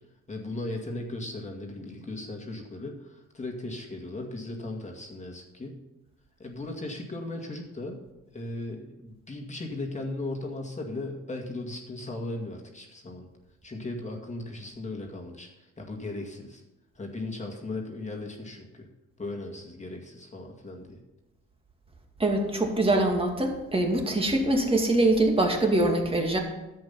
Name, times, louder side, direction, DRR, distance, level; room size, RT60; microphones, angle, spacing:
voice 1, 0.3-5.8 6.4-8.0 8.3-13.3 13.6-16.6 17.0-18.9 19.2-21.0, left 2 dB, 25° left, 0 dB, 2.1 m, -37 dB
voice 2, 22.2-26.4, right 2 dB, 20° right, 2 dB, 2.3 m, -24 dB
11.0 x 7.9 x 5.7 m, 1.0 s
cardioid pair, 90°, 30 cm